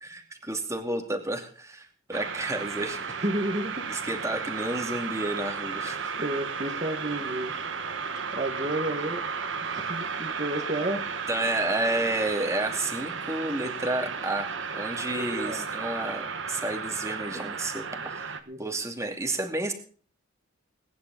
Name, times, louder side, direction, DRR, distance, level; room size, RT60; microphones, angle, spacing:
voice 1, 0.0-3.0 3.9-6.1 11.3-19.7, right 2 dB, 15° right, 5 dB, 2.4 m, -31 dB
sound 1, 2.1-18.4, right 5 dB, 65° right, 1.6 m, -34 dB
voice 2, 3.1-3.9 6.2-7.6 8.3-9.2 9.6-11.0 15.2-15.6 18.5-18.6, right 1 dB, 35° right, 2 dB, 1.8 m, -31 dB
21.5 x 10.5 x 4.1 m, 0.43 s
head